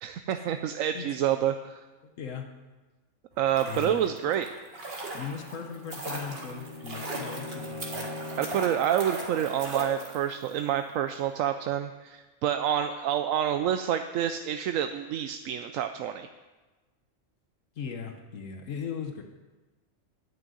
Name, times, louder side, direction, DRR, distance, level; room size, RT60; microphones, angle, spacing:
voice 1, 0.0-1.8 3.4-4.5 8.4-16.3, right 10 dB, 85° right, 8 dB, 1.0 m, -28 dB
voice 2, 2.0-2.5 3.6-3.9 5.1-8.0 17.7-19.2, left 6 dB, 80° left, 4 dB, 1.3 m, -38 dB
Carlos R - Swimming in the Pool, 3.3-10.5 10.8-10.9, right 2 dB, 50° right, 2.1 m, -38 dB
Bowed string instrument, 5.0-8.9, left 2 dB, 25° left, 3.1 m, -42 dB
12.0 x 6.3 x 9.3 m, 1.2 s
omnidirectional pair, 1.3 m